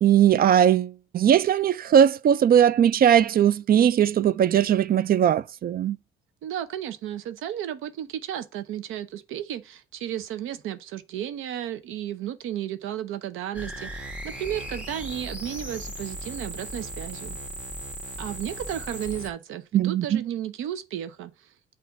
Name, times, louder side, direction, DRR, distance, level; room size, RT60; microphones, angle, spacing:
voice 1, 0.0-6.0 19.7-20.2, right 9 dB, 50° right, 0.4 m, -19 dB
voice 2, 6.4-17.4 18.2-21.3, right 11 dB, 90° right, 0.7 m, -33 dB
sound 1, 13.5-19.3, equal, 5° right, 1.4 m, -37 dB
7.0 x 2.6 x 5.6 m
cardioid pair, 90°, 20 cm